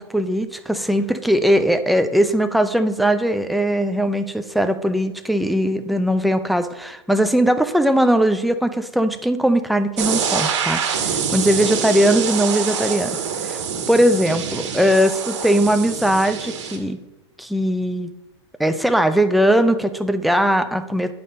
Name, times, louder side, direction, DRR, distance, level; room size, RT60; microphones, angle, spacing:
voice 1, 0.0-13.2 13.4-13.6 13.9-17.0 17.4-18.1 18.6-21.1, equal, ahead, 8 dB, 0.4 m, -19 dB
sound 1, 10.0-16.8, right 7 dB, 70° right, 1.8 m, -25 dB
9.7 x 5.6 x 4.0 m, 0.96 s
hypercardioid pair, 130°, 15 cm